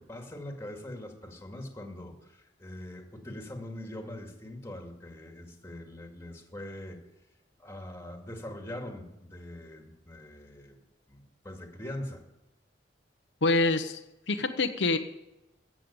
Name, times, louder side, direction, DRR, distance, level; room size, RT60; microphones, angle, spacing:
voice 1, 0.0-7.0 7.6-10.8 11.1-12.2, left 1 dB, 15° left, 3 dB, 2.2 m, -42 dB
voice 2, 13.4-14.0 14.3-15.0, left 3 dB, 85° left, 6 dB, 1.0 m, -25 dB
14.5 x 7.6 x 8.8 m, 0.92 s
head